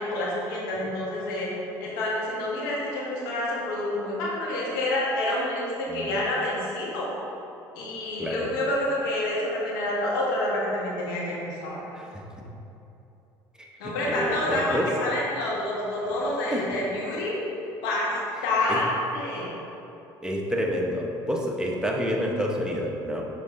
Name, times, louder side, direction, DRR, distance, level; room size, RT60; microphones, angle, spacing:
voice 1, 0.0-1.5 1.8-7.1 7.7-11.8 13.8-17.4 17.8-18.1 18.4-19.5, left 1 dB, 85° left, -4 dB, 1.3 m, -28 dB
voice 2, 8.2-8.5 11.9-12.2 13.8-14.9 16.5-16.7 18.7-18.8 20.2-23.2, equal, 5° right, -1 dB, 1.0 m, -29 dB
6.9 x 3.8 x 3.7 m, 3.0 s
hypercardioid pair, 70°, 11 cm